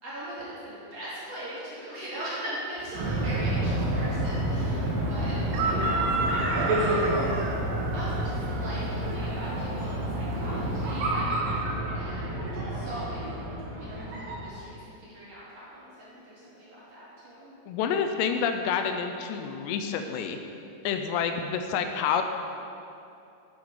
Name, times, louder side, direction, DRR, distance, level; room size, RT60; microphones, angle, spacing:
voice 1, 0.0-7.3 7.9-11.5 11.9-13.4 13.7-17.5, right 1 dB, 40° right, -9 dB, 3.2 m, -40 dB
Chicken rooster, 2.8-11.1, right 3 dB, 75° right, 2.3 m, -34 dB
sound 1, 2.9-14.5, right 1 dB, 60° right, 3.5 m, -29 dB
voice 2, 17.7-20.4 20.8-22.2, left 7 dB, 85° left, 6 dB, 2.8 m, -28 dB
11.0 x 8.0 x 4.9 m, 2.6 s
omnidirectional pair, 5.0 m